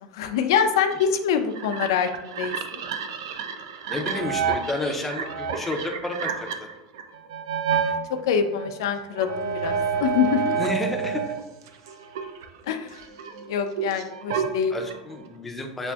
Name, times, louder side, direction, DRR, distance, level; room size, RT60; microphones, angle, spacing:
voice 1, 0.1-2.8 8.2-10.5 12.7-13.0 13.5-14.7, left 7 dB, 80° left, 8 dB, 0.4 m, -25 dB
sound 1, 0.9-8.0 8.5-11.4 11.7-15.3, right 6 dB, 75° right, 0.4 m, -29 dB
voice 2, 3.9-6.7 10.6-11.2 14.7-15.9, left 2 dB, 5° left, 2 dB, 0.4 m, -30 dB
6.9 x 2.5 x 2.3 m, 1.0 s
supercardioid pair, 175°, 2 cm